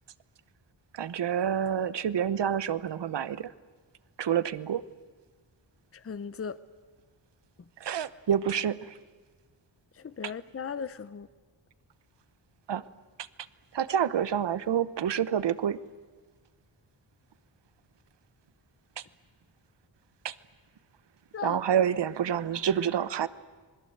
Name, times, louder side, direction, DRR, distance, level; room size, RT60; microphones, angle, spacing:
voice 1, 0.9-3.5 4.2-4.8 7.8-8.9 12.7-12.8 13.7-15.8 19.0-19.1 20.2-20.3 21.4-23.3, right 9 dB, 70° right, 16 dB, 1.0 m, -28 dB
voice 2, 5.9-6.6 9.9-11.3 21.3-21.6, left 6 dB, 30° left, 15 dB, 0.8 m, -37 dB
27.0 x 21.0 x 7.9 m, 1.4 s
wide cardioid pair, 90°, 44 cm